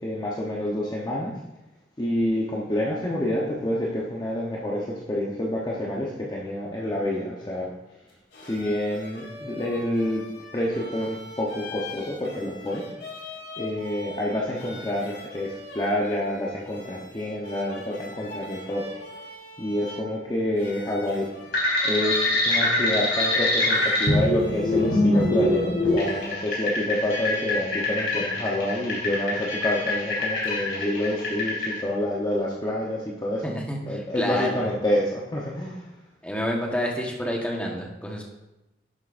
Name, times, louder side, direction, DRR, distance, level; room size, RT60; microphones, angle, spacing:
voice 1, 0.0-1.3 2.0-7.7 8.4-10.2 10.5-12.8 13.6-18.9 19.6-21.3 21.8-33.5 33.9-35.8, left 1 dB, 25° left, -4 dB, 0.9 m, -28 dB
sound 1, 8.1-26.3, left 2 dB, 80° left, 2.1 m, -42 dB
sound 2, 21.5-31.7, left 1 dB, 65° left, 3.0 m, -24 dB
voice 2, 33.4-34.7 36.2-38.2, equal, 5° left, -1 dB, 1.3 m, -29 dB
10.5 x 7.6 x 2.6 m, 0.98 s
head